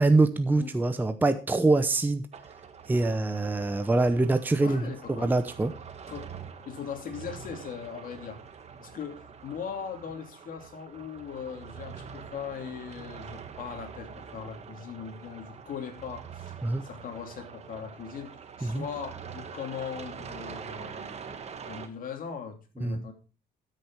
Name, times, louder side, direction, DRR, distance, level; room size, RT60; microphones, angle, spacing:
voice 1, 0.0-2.2 2.9-4.8 5.1-5.7 16.6-16.8 18.6-18.8 22.8-23.0, right 2 dB, 10° right, 9 dB, 0.7 m, -24 dB
sound 1, 2.3-21.9, right 6 dB, 40° right, 1.4 m, -44 dB
voice 2, 4.6-5.3 6.1-6.3 6.7-8.4 8.8-16.5 16.8-18.3 18.6-21.4 21.6-23.1, left 7 dB, 55° left, 5 dB, 2.6 m, -39 dB
12.5 x 6.6 x 4.6 m, 0.36 s
cardioid pair, 110°, 17 cm